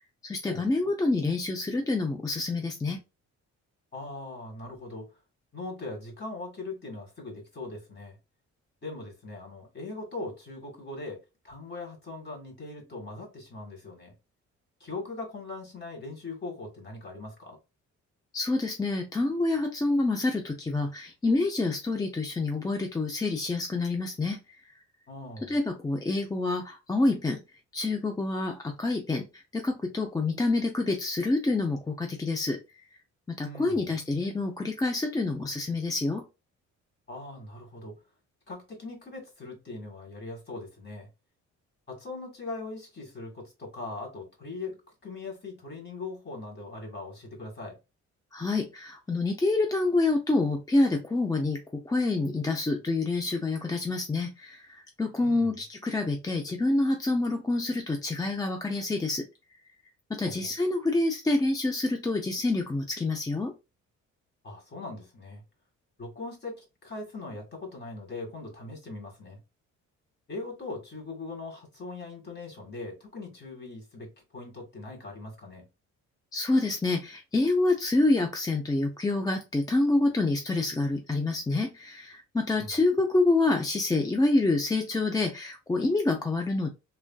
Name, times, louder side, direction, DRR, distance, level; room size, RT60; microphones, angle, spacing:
voice 1, 0.2-3.0 18.3-24.4 25.5-27.4 27.7-32.6 33.3-36.2 48.3-59.2 60.1-63.5 76.3-86.7, left 2 dB, 15° left, 0.4 m, -27 dB
voice 2, 3.9-5.1 5.5-8.2 8.8-11.2 11.4-14.1 14.8-17.6 25.1-25.6 33.4-33.8 37.1-38.0 38.5-41.1 41.9-47.8 55.2-55.6 60.2-60.5 64.4-65.4 66.0-69.4 70.3-75.7 82.5-82.7, left 3 dB, 35° left, 1.8 m, -40 dB
3.2 x 2.6 x 2.2 m
cardioid pair, 90°, 30 cm